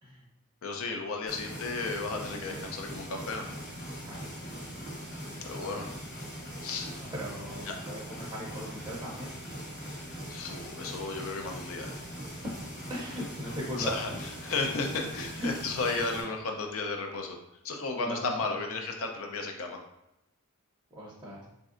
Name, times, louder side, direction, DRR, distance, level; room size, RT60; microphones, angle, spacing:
voice 1, 0.6-3.5 5.4-5.9 6.6-6.9 7.7-7.8 10.3-11.9 13.8-14.1 14.4-17.4 17.6-19.8, left 3 dB, 65° left, 3 dB, 0.5 m, -33 dB
sound 1, 1.3-16.2, equal, 35° left, 1.3 m, -41 dB
voice 2, 2.1-2.6 4.0-4.4 5.2-5.8 7.0-9.3 12.4-12.5 12.9-14.2 15.4-15.5 18.0-18.6 20.9-21.5, equal, 15° right, -5 dB, 0.6 m, -39 dB
4.1 x 2.6 x 2.4 m, 0.86 s
head